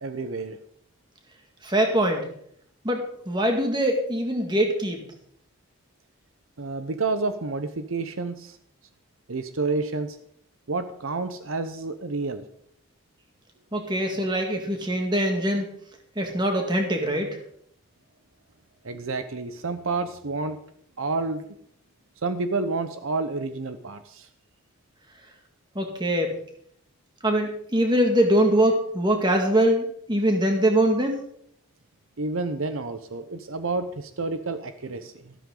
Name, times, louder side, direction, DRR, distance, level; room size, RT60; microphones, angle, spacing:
voice 1, 0.0-0.6 6.6-8.6 9.3-10.2 10.7-12.4 18.8-20.6 21.0-21.4 22.2-24.3 32.2-35.4, right 3 dB, 70° right, 10 dB, 0.8 m, -29 dB
voice 2, 1.6-2.3 2.8-5.0 13.7-15.6 16.2-17.4 25.8-26.3 27.2-31.2, right 1 dB, 20° right, 3 dB, 2.0 m, -23 dB
13.5 x 12.5 x 3.9 m, 0.66 s
head